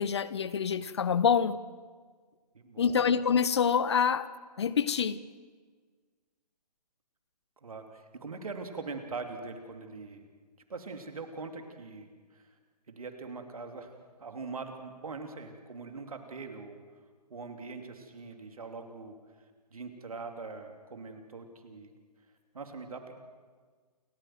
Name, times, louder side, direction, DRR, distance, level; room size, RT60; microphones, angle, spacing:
voice 1, 0.0-1.6 2.8-4.3 4.6-5.2, left 7 dB, 40° left, 16 dB, 0.8 m, -26 dB
voice 2, 2.5-3.0 7.6-10.3 10.7-12.5 12.9-13.9 14.2-16.8 17.3-19.2 19.7-21.9 22.5-23.1, right 4 dB, 60° right, 5 dB, 3.1 m, -42 dB
29.0 x 13.5 x 7.8 m, 1.5 s
figure-of-eight pair, 140°, 21 cm